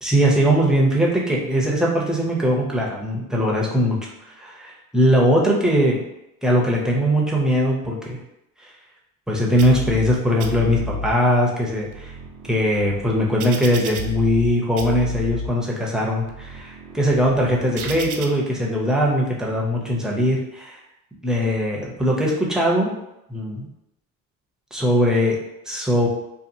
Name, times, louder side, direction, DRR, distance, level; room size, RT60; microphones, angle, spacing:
voice 1, 0.0-6.0 6.4-8.2 9.3-12.1 12.5-20.8 21.2-23.0 23.3-23.7 24.7-26.1, equal, ahead, -3 dB, 0.5 m, -20 dB
sound 1, 9.6-10.1 10.4-11.1 11.7-14.5 14.8-15.5 16.1-18.3, equal, 60° right, 0.5 m, -32 dB
2.7 x 2.3 x 2.6 m, 0.84 s
cardioid pair, 125°, 36 cm